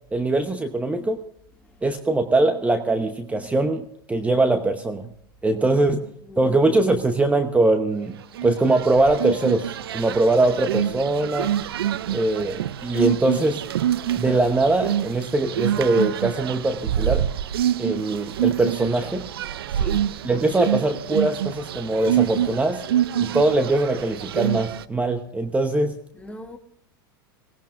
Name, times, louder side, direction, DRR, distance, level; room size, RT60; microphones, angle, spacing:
voice 1, 0.1-1.2 1.8-5.1 5.4-6.0 6.4-8.1 8.4-11.5 12.1-13.6 14.2-17.3 17.8-19.2 20.2-22.8 23.2-25.9, right 2 dB, 10° right, 0.9 m, -22 dB
voice 2, 6.2-6.8 19.7-20.1 26.1-26.6, left 2 dB, 10° left, 1.3 m, -41 dB
sound 1, 8.3-24.8, right 10 dB, 85° right, 0.5 m, -26 dB
24.5 x 18.0 x 2.5 m
hypercardioid pair, 105°, 12 cm